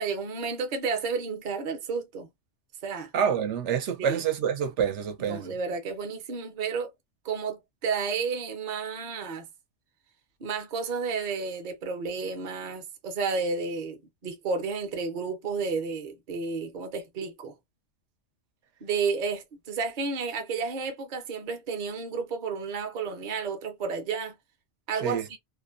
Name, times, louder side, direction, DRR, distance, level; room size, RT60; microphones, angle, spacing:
voice 1, 0.0-2.3 2.8-3.1 4.1-4.2 5.3-6.9 7.2-9.5 10.4-17.5 18.8-24.4 24.9-25.4, right 5 dB, 50° right, 0.7 m, -31 dB
voice 2, 3.1-5.5 25.0-25.2, right 8 dB, 80° right, 0.9 m, -27 dB
2.5 x 2.1 x 2.4 m
omnidirectional pair, 1.2 m